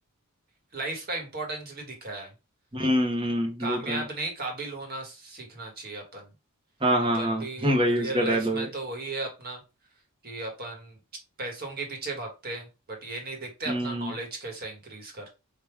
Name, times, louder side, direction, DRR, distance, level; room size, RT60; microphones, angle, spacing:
voice 1, 0.7-2.3 3.6-6.3 7.1-9.6 10.2-11.0 11.4-15.3, right 2 dB, 45° right, 1 dB, 1.4 m, -36 dB
voice 2, 2.7-4.0 6.8-8.7 13.7-14.1, equal, 25° right, 1 dB, 1.0 m, -25 dB
3.5 x 2.5 x 4.6 m, 0.28 s
head